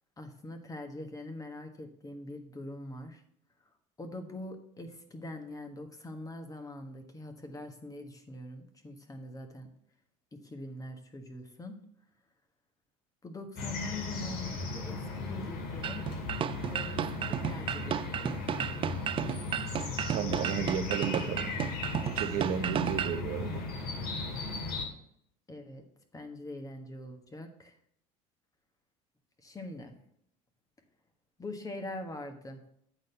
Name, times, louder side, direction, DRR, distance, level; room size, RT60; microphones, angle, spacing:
voice 1, 0.2-3.2 3.6-3.7 4.0-9.7 10.3-11.8 13.2-16.1 16.5-18.7 25.5-25.9 26.1-27.8 29.4-30.0 31.4-32.6, left 1 dB, 20° left, 6 dB, 1.4 m, -43 dB
sound 1, 13.6-24.8, left 3 dB, 60° left, 2.1 m, -37 dB
sound 2, 15.8-23.2, right 9 dB, 30° right, 0.3 m, -33 dB
voice 2, 20.1-21.5 22.1-23.7, right 8 dB, 55° right, 9 dB, 0.7 m, -33 dB
8.9 x 4.1 x 6.7 m, 0.69 s
hypercardioid pair, 85°, 18 cm